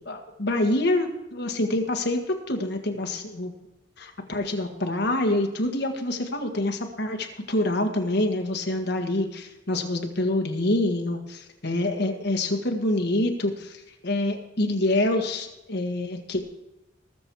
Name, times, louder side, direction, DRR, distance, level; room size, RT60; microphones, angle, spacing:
voice 1, 0.0-2.2 2.5-3.5 4.0-16.4, left 1 dB, 60° left, 5 dB, 1.7 m, -26 dB
20.0 x 7.1 x 4.7 m, 0.94 s
head